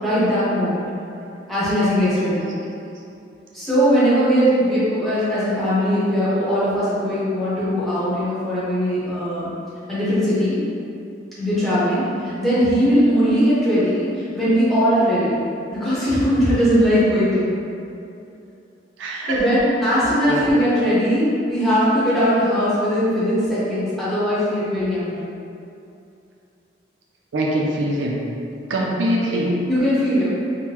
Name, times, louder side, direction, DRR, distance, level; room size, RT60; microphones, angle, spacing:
voice 1, 0.0-0.8 1.5-2.4 3.5-9.5 9.9-10.6 11.4-15.4 15.7-17.6 19.3-25.3 29.7-30.3, equal, ahead, -12 dB, 1.0 m, -19 dB
voice 2, 19.0-19.7 20.2-20.5 27.3-28.2 28.7-29.6, right 1 dB, 90° right, -2 dB, 0.5 m, -23 dB
3.5 x 2.1 x 2.9 m, 2.6 s
head